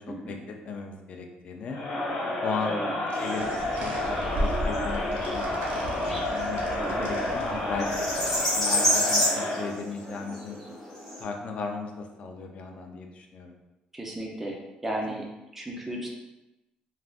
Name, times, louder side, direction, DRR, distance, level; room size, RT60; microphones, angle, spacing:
voice 1, 0.0-1.8 2.4-2.8 3.1-5.5 5.7-6.6 7.0-8.1 8.5-10.6 11.2-13.5 15.1-15.2, left 5 dB, 45° left, 3 dB, 0.4 m, -36 dB
Crowd, 1.7-9.8, left 1 dB, 65° left, 0.9 m, -30 dB
sound 1, 3.1-11.2, equal, 10° left, 1.4 m, -30 dB
sound 2, 3.4-8.7, right 1 dB, 70° right, 0.6 m, -35 dB
voice 2, 13.9-14.6 14.8-15.3 15.5-16.1, right 1 dB, 10° right, -1 dB, 0.5 m, -34 dB
3.4 x 2.5 x 2.4 m, 0.98 s
cardioid pair, 140°, 3 cm